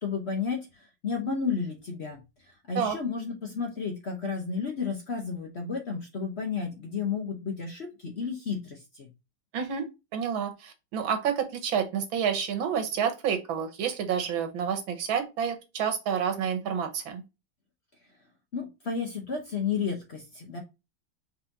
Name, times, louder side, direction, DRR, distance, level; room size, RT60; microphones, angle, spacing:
voice 1, 0.0-2.2 2.7-9.1 18.5-20.6, left 5 dB, 50° left, 3 dB, 0.8 m, -32 dB
voice 2, 9.5-9.9 10.1-17.2, right 7 dB, 90° right, 7 dB, 1.8 m, -29 dB
4.5 x 4.1 x 2.7 m, 0.26 s
omnidirectional pair, 2.1 m